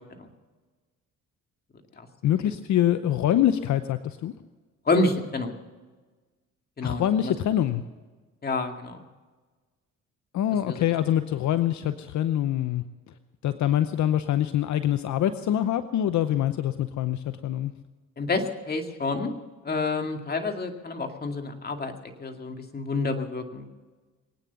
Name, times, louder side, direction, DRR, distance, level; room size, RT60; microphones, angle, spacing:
voice 1, 2.2-4.3 6.8-7.8 10.3-12.8 13.4-17.7, left 11 dB, 70° left, 11 dB, 0.8 m, -25 dB
voice 2, 4.9-5.5 6.8-7.3 8.4-9.0 10.7-10.8 18.2-19.3 19.6-21.9 22.2-23.7, left 3 dB, 30° left, 4 dB, 2.3 m, -28 dB
22.0 x 9.3 x 7.0 m, 1.3 s
cardioid pair, 90°, 30 cm